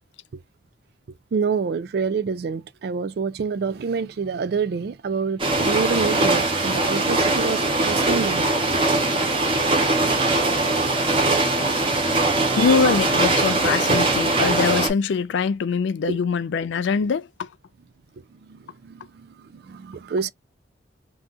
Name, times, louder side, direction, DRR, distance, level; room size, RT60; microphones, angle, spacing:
voice 1, 1.3-8.5 12.5-12.7 16.1-16.2 18.5-20.3, right 5 dB, 55° right, 0.3 m, -27 dB
sound 1, 5.4-14.9, right 2 dB, 30° right, 0.8 m, -21 dB
voice 2, 12.6-17.5, left 5 dB, 70° left, 0.3 m, -23 dB
2.5 x 2.3 x 3.6 m
head